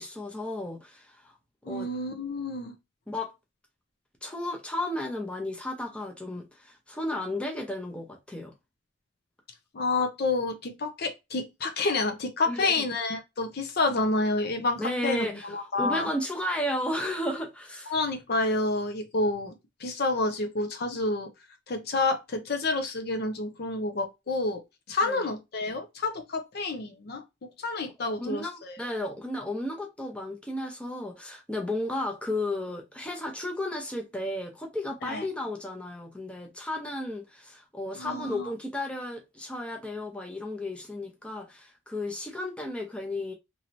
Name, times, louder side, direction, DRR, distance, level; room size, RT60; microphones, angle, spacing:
voice 1, 0.0-1.3 1.7-1.9 3.1-3.3 4.2-8.5 12.5-12.7 14.8-17.9 25.0-25.2 28.1-43.3, left 1 dB, 5° left, 0.6 m, -33 dB
voice 2, 1.6-2.7 9.7-16.1 17.9-21.3 21.7-24.6 24.9-28.8 35.0-35.2 38.0-38.5, left 2 dB, 50° left, 0.5 m, -29 dB
3.1 x 2.8 x 2.5 m
head